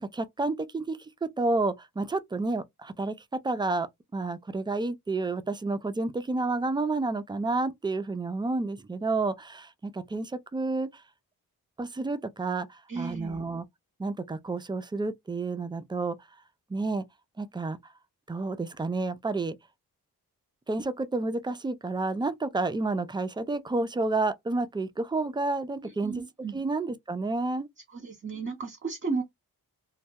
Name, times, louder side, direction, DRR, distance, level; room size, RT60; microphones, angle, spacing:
voice 1, 0.0-11.0 11.8-13.6 14.0-16.2 16.7-17.0 17.4-17.8 18.3-19.6 20.7-26.1 26.5-27.7, right 3 dB, 10° right, 0.3 m, -30 dB
voice 2, 12.9-13.4 25.8-26.6 27.9-29.2, right 4 dB, 30° right, 0.8 m, -34 dB
2.3 x 2.0 x 2.6 m
cardioid pair, 55°, 40 cm